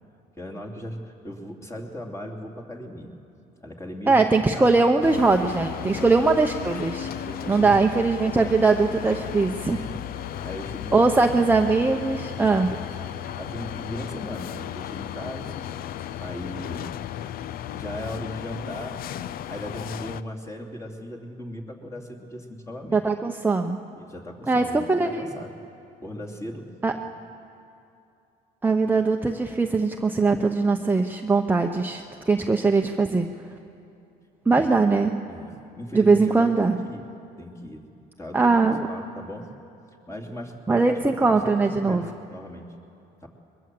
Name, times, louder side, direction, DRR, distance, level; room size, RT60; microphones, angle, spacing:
voice 1, 0.4-3.1 3.6-4.2 4.5-4.7 5.8-6.0 7.3-7.8 8.4-8.6 9.7-10.9 13.3-15.6 16.2-16.9 17.7-19.1 19.5-23.0 24.0-25.5 26.0-26.7 27.0-27.1 34.5-34.7 35.3-37.1 37.4-37.9 38.2-39.5 40.1-42.7 43.2-43.3, left 1 dB, 15° left, 0 dB, 2.9 m, -38 dB
voice 2, 4.1-9.8 10.9-12.8 22.9-23.8 24.5-25.3 26.8-26.9 28.6-33.3 34.5-35.1 35.9-36.8 38.3-38.9 40.7-42.1, right 3 dB, 10° right, 3 dB, 0.8 m, -21 dB
sound 1, 5.0-20.2, left 11 dB, 60° left, 0.6 m, -35 dB
22.0 x 22.0 x 7.7 m, 2.7 s
cardioid pair, 110°, 17 cm